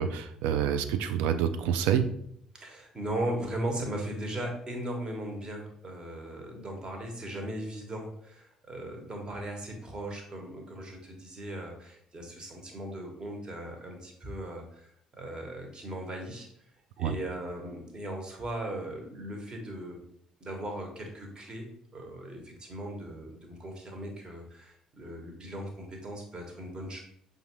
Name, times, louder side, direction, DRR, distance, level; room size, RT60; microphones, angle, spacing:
voice 1, 0.0-2.1 17.0-17.1, right 8 dB, 65° right, 9 dB, 0.3 m, -27 dB
voice 2, 2.5-16.5 17.0-20.0 20.4-21.7 21.9-27.0, right 1 dB, 30° right, 2 dB, 1.1 m, -38 dB
5.7 x 2.4 x 2.9 m, 0.69 s
figure-of-eight pair, 45°, 3 cm